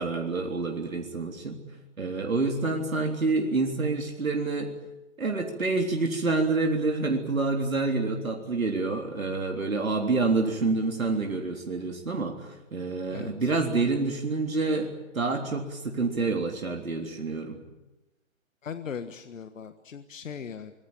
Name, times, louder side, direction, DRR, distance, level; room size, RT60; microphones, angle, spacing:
voice 1, 0.0-1.6 2.0-4.7 5.2-17.6, right 3 dB, 90° right, 2 dB, 3.7 m, -28 dB
voice 2, 18.6-20.7, left 7 dB, 70° left, 9 dB, 1.6 m, -38 dB
25.5 x 21.5 x 8.9 m, 1.0 s
hypercardioid pair, 140°, 40 cm